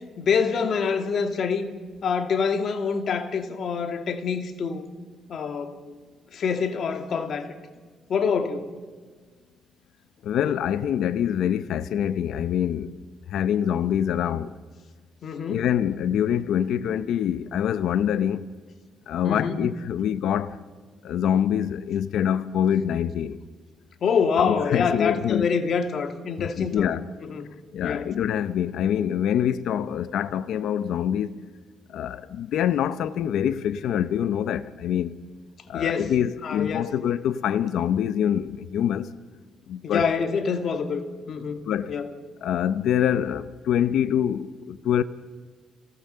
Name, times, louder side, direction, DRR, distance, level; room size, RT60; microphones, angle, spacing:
voice 1, 0.2-1.7 2.0-4.9 5.3-6.0 6.3-7.6 8.1-8.7 15.2-15.6 19.2-19.6 24.0-26.9 27.2-27.5 27.8-28.1 35.7-36.1 36.4-36.9 39.8-42.1, left 6 dB, 60° left, 2.2 m, -26 dB
voice 2, 10.2-13.0 13.3-14.5 15.5-18.4 19.1-20.6 21.0-23.4 24.4-25.5 26.4-27.0 27.7-31.4 31.9-35.1 35.7-39.1 39.7-40.1 41.7-42.0 42.4-45.0, left 9 dB, 75° left, 0.8 m, -25 dB
27.0 x 17.5 x 6.8 m
cardioid pair, 90°, 0 cm